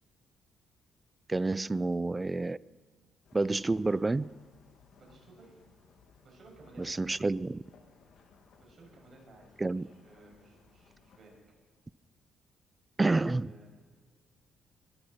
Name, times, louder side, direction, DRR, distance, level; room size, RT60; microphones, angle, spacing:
voice 1, 1.3-2.6 3.3-4.3 6.8-7.6 9.6-9.9 13.0-13.5, right 3 dB, 20° right, 0.3 m, -29 dB
sound 1, 3.2-11.4, left 5 dB, 70° left, 2.0 m, -62 dB
voice 2, 5.0-5.6 6.2-6.9 8.6-11.3 13.0-13.7, right 2 dB, 50° right, 6.5 m, -57 dB
22.0 x 13.5 x 4.3 m
cardioid pair, 90°, 0 cm